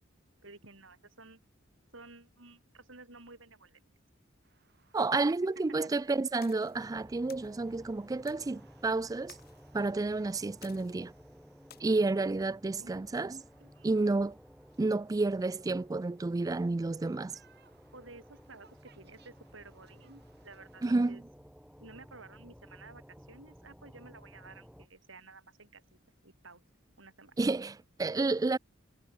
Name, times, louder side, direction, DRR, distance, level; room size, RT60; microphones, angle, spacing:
voice 1, 0.4-1.4 1.9-3.8 5.3-5.4 12.8-13.0 13.6-13.9 17.9-21.2 21.8-25.8 26.2-26.6 27.0-27.3, right 3 dB, 75° right, 7.2 m, -53 dB
sound 1, 4.4-21.0, right 6 dB, 60° right, 5.0 m, -69 dB
voice 2, 4.9-9.4 9.7-11.1 11.8-13.4 13.8-14.4 14.8-17.4 20.8-21.2 27.4-28.6, right 3 dB, 20° right, 0.3 m, -30 dB
sound 2, 6.4-6.8 7.3-7.5 8.3-8.5 9.3-9.7 10.6-11.1 11.7-11.8, left 10 dB, 50° left, 2.0 m, -55 dB
sound 3, 6.7-24.9, equal, 5° right, 4.6 m, -56 dB
head